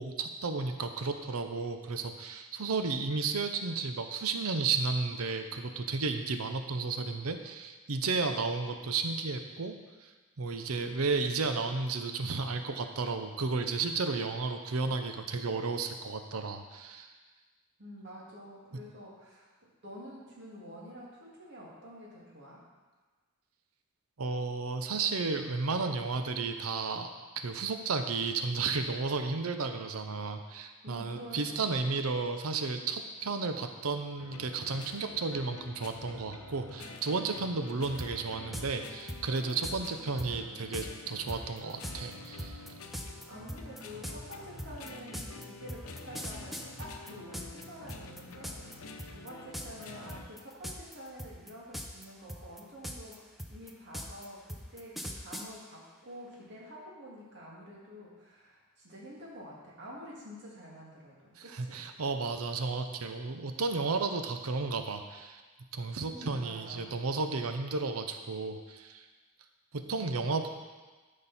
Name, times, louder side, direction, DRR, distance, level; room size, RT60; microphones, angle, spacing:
voice 1, 0.0-10.1 10.4-17.1 24.2-27.1 27.4-42.6 61.4-65.4 65.7-69.0 69.7-70.5, right 4 dB, 75° right, 6 dB, 0.7 m, -33 dB
voice 2, 17.8-22.6 30.8-31.7 43.3-48.8 49.1-61.8 66.1-66.9 69.9-70.4, equal, 55° right, -5 dB, 2.3 m, -48 dB
sound 1, 34.2-50.3, left 3 dB, 75° left, 0.8 m, -48 dB
sound 2, 38.0-38.1 38.5-38.7 39.1-39.8 40.2-40.3 40.7-40.9 41.3-47.6 47.9-48.7 49.0-49.3 49.5-49.8 50.1-50.9 51.2-52.0 52.3-55.5, equal, ahead, 0.6 m, -40 dB
13.0 x 5.3 x 4.2 m, 1.3 s
head